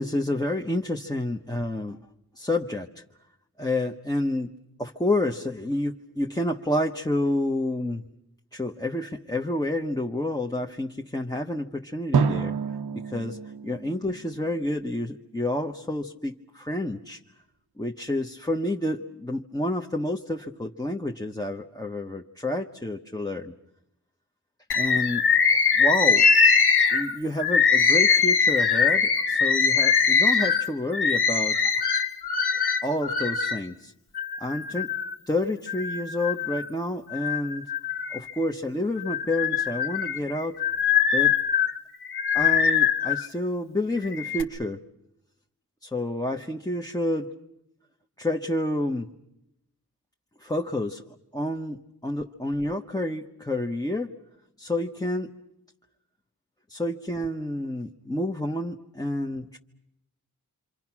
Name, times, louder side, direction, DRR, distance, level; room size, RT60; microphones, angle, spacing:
voice 1, 0.0-2.0 2.4-3.0 3.6-4.5 4.8-8.0 8.5-12.5 12.9-13.4 13.6-17.2 17.8-23.5 24.7-25.2 25.8-26.3 26.9-31.6 32.8-33.9 34.4-34.9 35.3-37.7 38.1-40.6 41.1-41.4 42.3-44.8 45.8-47.3 48.2-49.1 50.4-51.0 51.3-54.1 54.6-55.3 56.7-59.6, left 1 dB, 10° left, 1 dB, 1.1 m, -29 dB
Drum, 12.1-15.0, right 6 dB, 75° right, 0.9 m, -28 dB
Bird, 24.7-33.6 34.2-35.1 35.7-36.7 37.1-38.5 39.0-43.3 44.0-44.4, left 6 dB, 85° left, 1.6 m, -22 dB
27.5 x 25.5 x 6.1 m, 0.83 s
wide cardioid pair, 75°, 37 cm